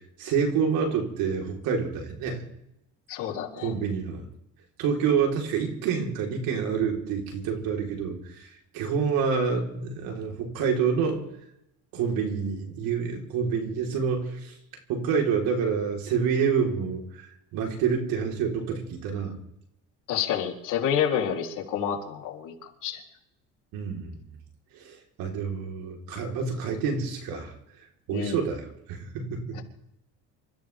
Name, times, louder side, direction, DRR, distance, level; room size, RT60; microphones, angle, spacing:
voice 1, 0.2-2.4 3.6-4.2 4.8-11.2 11.9-14.5 14.9-19.4 23.7-24.2 24.7-27.5 28.1-29.6, right 6 dB, 75° right, 1 dB, 4.3 m, -28 dB
voice 2, 3.1-3.7 20.1-23.0 28.1-28.4 29.5-29.6, left 8 dB, 60° left, 0 dB, 3.7 m, -29 dB
28.0 x 14.0 x 3.6 m, 0.81 s
cardioid pair, 110°, 35 cm